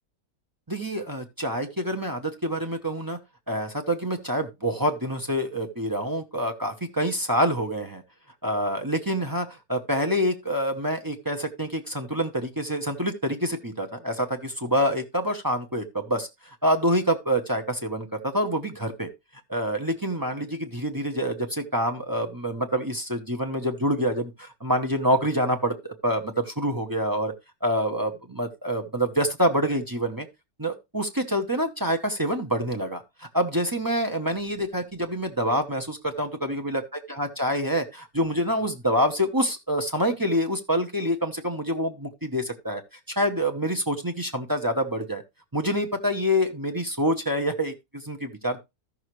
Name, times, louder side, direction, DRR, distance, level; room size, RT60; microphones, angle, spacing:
voice 1, 0.7-3.2 3.5-8.0 8.4-19.1 19.5-27.3 27.6-30.3 30.6-36.8 37.2-42.8 43.2-45.2 45.5-48.6, equal, 20° right, 0.8 m, -26 dB
13.5 x 6.4 x 3.1 m
omnidirectional pair, 1.6 m